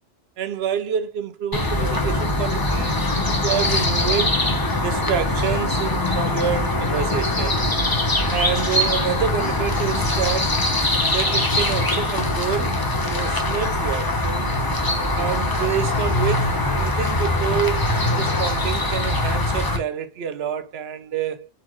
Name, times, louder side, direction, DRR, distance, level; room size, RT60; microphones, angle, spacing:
voice 1, 0.4-4.3 4.8-7.6 8.3-10.5 11.1-12.7 13.0-14.5 15.1-17.8 18.2-21.5, right 8 dB, 70° right, 0.8 m, -27 dB
sound 1, 1.5-19.8, left 1 dB, 20° left, 0.8 m, -22 dB
4.3 x 4.1 x 3.0 m
omnidirectional pair, 1.2 m